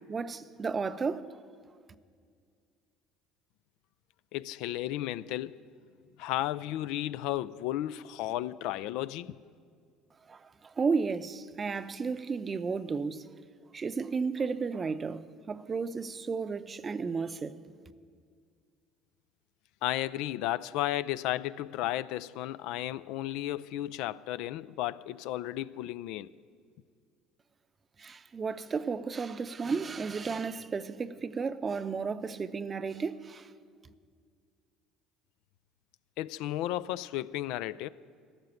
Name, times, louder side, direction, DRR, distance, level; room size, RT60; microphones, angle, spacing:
voice 1, 0.1-1.4 10.3-13.3 13.7-17.6 28.0-33.5, right 5 dB, 30° right, 0.7 m, -33 dB
voice 2, 4.3-5.6 6.2-9.4 19.8-26.3 36.2-37.9, left 14 dB, 70° left, 0.3 m, -33 dB
14.5 x 6.6 x 9.7 m
hypercardioid pair, 65°, 0 cm